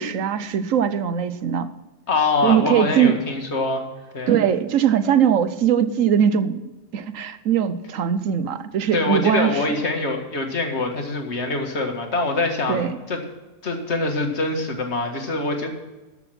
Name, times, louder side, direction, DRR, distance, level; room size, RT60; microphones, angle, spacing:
voice 1, 0.0-1.7 2.4-3.2 4.3-6.6 6.9-9.6 12.7-13.0, right 8 dB, 70° right, 12 dB, 1.1 m, -20 dB
voice 2, 2.1-3.9 4.1-4.5 8.9-13.2 13.6-15.7, left 3 dB, 50° left, 3 dB, 2.0 m, -24 dB
13.0 x 7.0 x 6.1 m, 1.1 s
omnidirectional pair, 1.5 m